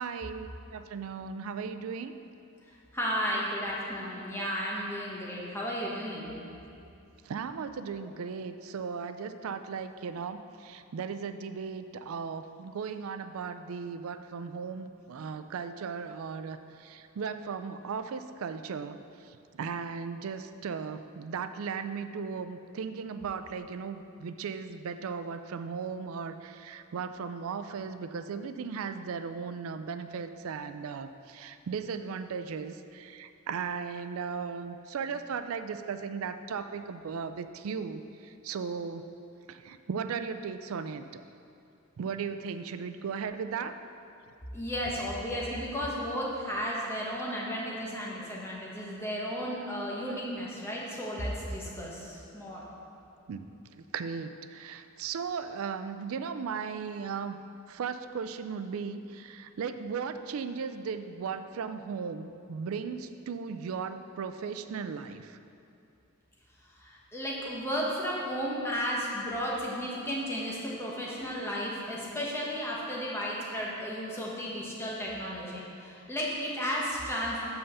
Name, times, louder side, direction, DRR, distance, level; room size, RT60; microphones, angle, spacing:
voice 1, 0.0-2.2 7.2-19.0 19.3-39.0 39.5-41.2 42.0-43.8 53.3-53.5 53.8-57.4 57.7-65.4, right 6 dB, 70° right, 10 dB, 0.4 m, -37 dB
voice 2, 2.9-6.3 44.5-52.6 66.8-77.4, equal, 10° left, -5 dB, 1.2 m, -34 dB
5.6 x 5.5 x 6.5 m, 2.7 s
head